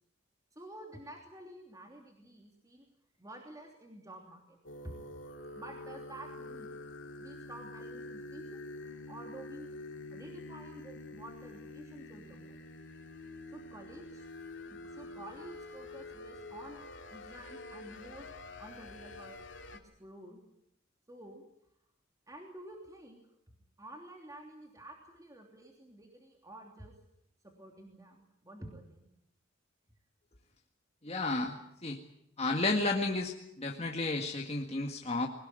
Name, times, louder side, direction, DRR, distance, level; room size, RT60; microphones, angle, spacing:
voice 1, 0.5-2.9 3.2-4.6 4.8-4.9 5.5-6.7 7.2-8.6 9.1-9.7 10.1-12.6 13.5-14.3 14.7-16.8 17.1-18.3 18.6-19.5 19.7-20.4 21.1-21.4 22.3-23.2 23.8-26.9 27.4-29.1, right 1 dB, 20° right, 1 dB, 3.1 m, -50 dB
sound 1, 4.6-19.8, left 2 dB, 70° left, 2.6 m, -47 dB
voice 2, 31.0-31.6 31.8-32.0 32.4-35.3, left 2 dB, 30° left, 1 dB, 1.9 m, -32 dB
22.0 x 19.5 x 9.0 m, 0.77 s
head